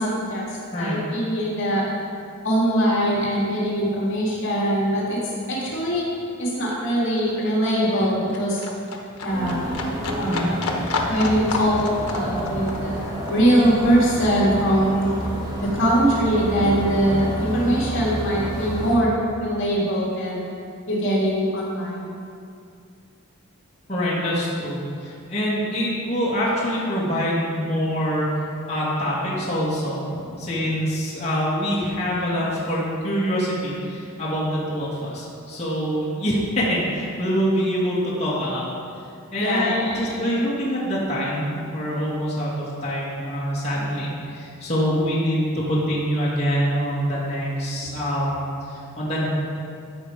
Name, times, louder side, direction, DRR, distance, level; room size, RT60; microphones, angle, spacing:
voice 1, 0.0-1.9 2.4-5.2 5.5-6.1 6.4-8.6 9.2-9.7 10.2-10.5 11.0-15.1 15.6-19.1 19.4-20.4 20.9-22.1 30.2-30.3 39.4-40.2 43.7-43.8, equal, 60° left, -5 dB, 2.1 m, -22 dB
Livestock farm animals working animals, 3.9-4.0 4.3-15.3 15.6-16.6 16.9-17.0, left 3 dB, 80° left, 1.1 m, -32 dB
sound 1, 9.3-18.9, equal, 15° right, 2.1 m, -30 dB
voice 2, 23.9-30.0 30.4-38.7 39.3-49.3, equal, 30° left, -8 dB, 2.1 m, -25 dB
13.5 x 5.1 x 4.9 m, 2.4 s
head